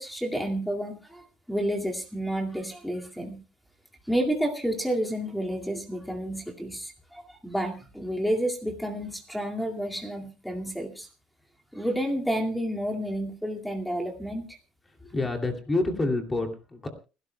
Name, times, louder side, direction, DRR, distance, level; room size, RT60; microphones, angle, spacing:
voice 1, 0.0-3.4 4.1-11.1 11.7-14.5, equal, ahead, 2 dB, 2.2 m, -30 dB
voice 2, 15.0-16.9, left 2 dB, 15° left, 4 dB, 2.6 m, -28 dB
29.5 x 12.5 x 2.2 m, 0.33 s
cardioid pair, 130°, 0 cm